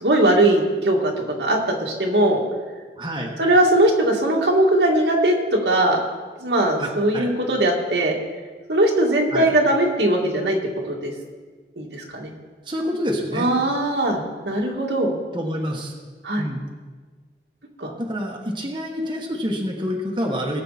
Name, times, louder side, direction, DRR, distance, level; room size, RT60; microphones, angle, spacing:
voice 1, 0.0-2.4 3.4-6.0 6.4-8.1 8.7-10.6 10.9-11.1 11.8-12.3 13.3-15.1 16.2-16.5 17.8-17.9, right 1 dB, 80° right, -1 dB, 2.3 m, -20 dB
voice 2, 3.0-3.3 6.8-7.3 9.3-9.5 12.7-13.5 15.3-15.9 16.4-16.6 18.0-20.6, equal, 25° right, -1 dB, 1.5 m, -27 dB
20.5 x 7.9 x 4.2 m, 1.5 s
head